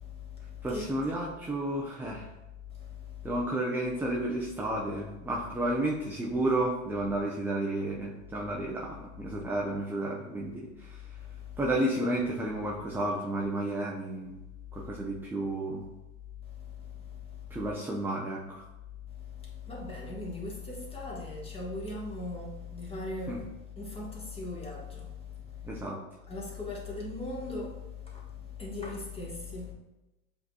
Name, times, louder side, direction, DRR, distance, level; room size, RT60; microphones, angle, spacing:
voice 1, 0.0-0.8 2.7-3.3 11.4-11.6 16.5-17.5 19.1-25.8 26.3-29.7, left 3 dB, 15° left, 1.3 m, -39 dB
voice 2, 0.6-2.3 3.2-11.2 11.6-14.4 14.7-15.8 17.5-18.6 23.3-23.4 25.6-26.0, right 1 dB, 5° right, 0.4 m, -32 dB
7.6 x 2.8 x 2.3 m
hypercardioid pair, 95°, 40 cm